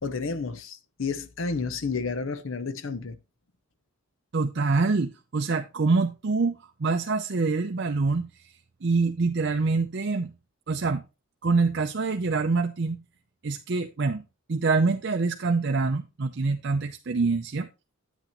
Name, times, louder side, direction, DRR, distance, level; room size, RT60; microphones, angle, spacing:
voice 1, 0.0-3.2, left 4 dB, 75° left, 0.7 m, -31 dB
voice 2, 4.3-8.5 8.8-10.3 10.7-11.0 11.4-13.0 13.4-14.2 14.5-17.7, right 4 dB, 55° right, 0.5 m, -25 dB
9.0 x 8.4 x 3.0 m
head